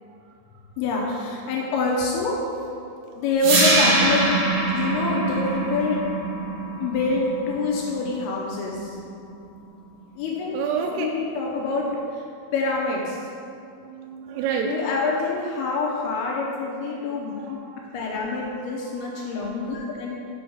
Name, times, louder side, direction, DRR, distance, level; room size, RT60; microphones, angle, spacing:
voice 1, 0.8-2.4 3.2-4.2 4.7-6.0 6.8-9.0 10.2-12.2 12.5-13.2 14.7-17.6 17.9-20.2, left 3 dB, 80° left, -2 dB, 2.7 m, -26 dB
sound 1, 3.4-9.4, right 2 dB, 60° right, 1.5 m, -24 dB
voice 2, 10.5-11.1 11.6-12.1 13.2-13.3 13.8-15.2 16.0-16.2 16.6-17.0 17.2-19.9, right 6 dB, 85° right, 1 dB, 2.5 m, -33 dB
6.1 x 5.0 x 6.2 m, 2.4 s
omnidirectional pair, 4.5 m